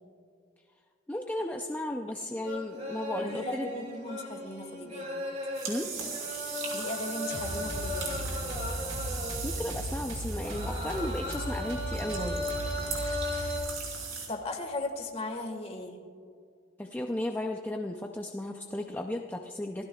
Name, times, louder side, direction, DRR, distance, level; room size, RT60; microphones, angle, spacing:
voice 1, 1.1-3.7 5.7-5.9 9.4-12.5 16.8-19.8, left 1 dB, 10° left, 2 dB, 0.5 m, -34 dB
sound 1, 2.4-9.8 10.3-13.6, left 1 dB, 35° right, 3.0 m, -37 dB
voice 2, 3.2-5.2 6.7-8.5 14.3-15.9, left 2 dB, 30° left, 4 dB, 1.6 m, -37 dB
sound 2, 5.5-14.3, right 5 dB, 85° right, 4.4 m, -40 dB
sound 3, 7.3-14.0, equal, 65° right, 2.8 m, -37 dB
27.0 x 16.0 x 2.4 m, 2.3 s
head